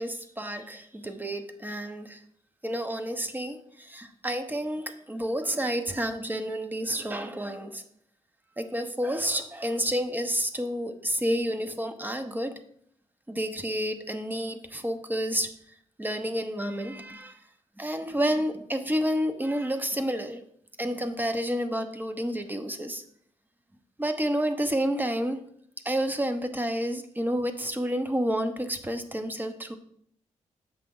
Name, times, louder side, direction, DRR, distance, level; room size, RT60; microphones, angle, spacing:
voice 1, 0.0-2.2 2.6-7.8 8.6-12.5 13.3-15.5 16.0-17.4 17.8-20.4 20.8-23.0 24.0-25.4 25.8-29.8, equal, 15° right, 8 dB, 0.9 m, -30 dB
7.5 x 5.8 x 3.8 m, 0.66 s
cardioid pair, 70°, 13 cm